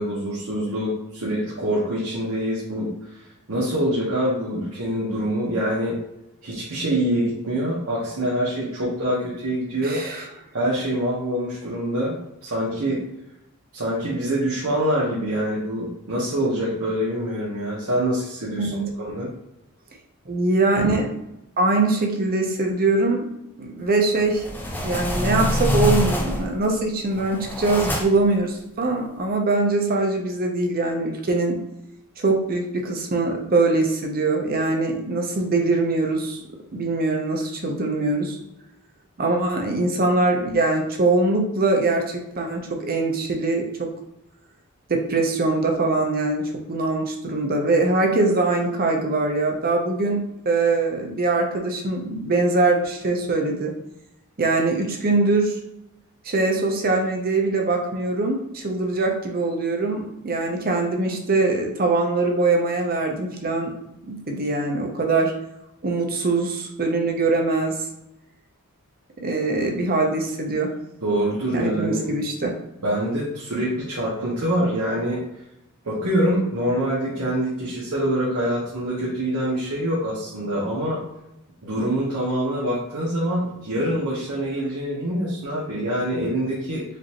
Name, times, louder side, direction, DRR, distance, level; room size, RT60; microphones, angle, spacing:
voice 1, 0.0-2.9 3.5-6.0 6.4-10.0 10.5-13.0 13.7-18.7 19.0-19.3 71.0-72.0 72.8-75.2 75.8-81.0 81.6-86.8, right 1 dB, 70° right, -6 dB, 1.1 m, -25 dB
voice 2, 9.8-10.2 18.6-18.8 20.3-21.1 21.6-23.3 23.6-24.4 24.8-31.6 32.2-36.4 36.7-38.4 39.2-43.9 44.9-46.4 46.7-53.7 54.4-55.6 56.2-63.7 64.1-65.3 65.8-67.7 69.2-70.7 71.5-72.5, right 2 dB, 40° right, 2 dB, 0.7 m, -22 dB
sound 1, 24.1-26.6 27.1-28.3, equal, 10° left, 0.5 m, -25 dB
5.1 x 2.6 x 2.9 m, 0.86 s
head